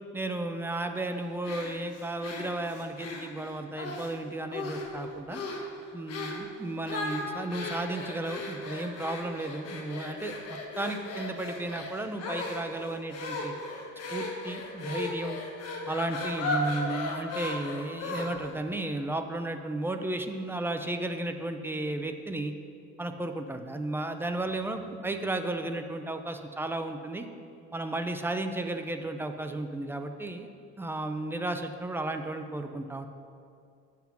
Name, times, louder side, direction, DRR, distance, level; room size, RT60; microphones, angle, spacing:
voice 1, 0.1-5.4 5.9-13.5 14.1-15.4 15.9-22.5 23.0-27.3 27.7-30.5 30.8-33.1, right 2 dB, 10° right, 6 dB, 0.3 m, -34 dB
sound 1, 1.4-4.1 4.5-5.0 5.3-5.7 6.1-6.4 6.8-18.5, left 2 dB, 55° left, 1.3 m, -36 dB
8.5 x 5.9 x 5.9 m, 2.4 s
cardioid pair, 150°, 29 cm